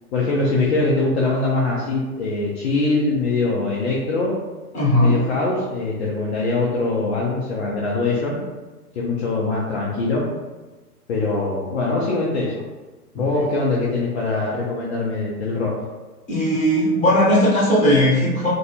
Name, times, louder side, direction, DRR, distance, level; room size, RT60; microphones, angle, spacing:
voice 1, 0.1-4.3 5.0-8.4 9.0-10.2 11.1-12.6 13.2-15.7, left 3 dB, 45° left, -5 dB, 0.5 m, -22 dB
voice 2, 4.7-5.2 13.1-13.4 16.3-18.5, equal, 15° left, -7 dB, 0.8 m, -18 dB
2.6 x 2.2 x 2.7 m, 1.2 s
figure-of-eight pair, 110°, 46 cm